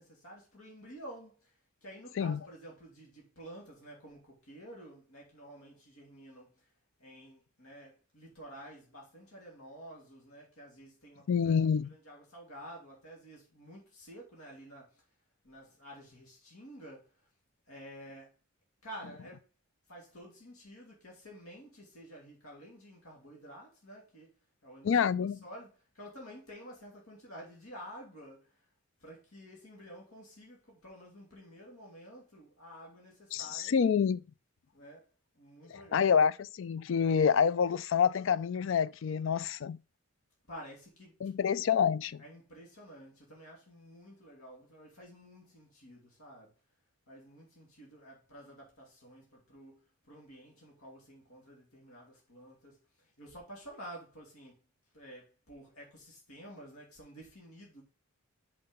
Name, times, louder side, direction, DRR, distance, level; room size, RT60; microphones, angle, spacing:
voice 1, 0.0-1.5 1.8-6.7 7.0-15.0 15.4-17.1 17.7-18.3 18.8-19.5 19.9-24.3 24.6-28.6 29.0-33.7 34.7-36.1 40.5-41.1 42.2-46.5 47.1-54.6 54.9-57.8, equal, 85° left, 2.9 m, -51 dB
voice 2, 11.3-11.9 24.8-25.4 33.3-34.2 35.7-36.3 36.6-39.8 41.2-42.2, left 7 dB, 60° left, 0.3 m, -27 dB
5.8 x 5.3 x 5.3 m
head